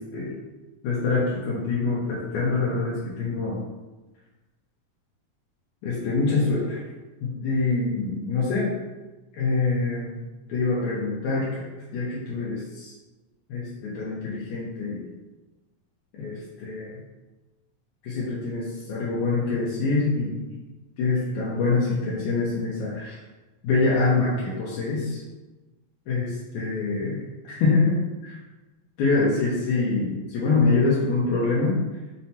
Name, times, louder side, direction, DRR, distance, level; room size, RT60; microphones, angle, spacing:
voice 1, 0.8-3.6 5.8-6.8 7.2-8.7 9.4-10.1 10.5-11.6 11.9-12.9 13.5-15.0 16.2-16.9 18.0-20.5 21.0-23.1 23.6-25.2 26.1-27.2 27.4-28.0 28.2-28.3 29.0-31.8, left 3 dB, 85° left, -7 dB, 1.7 m, -25 dB
5.4 x 2.1 x 2.8 m, 1.2 s
omnidirectional pair, 4.0 m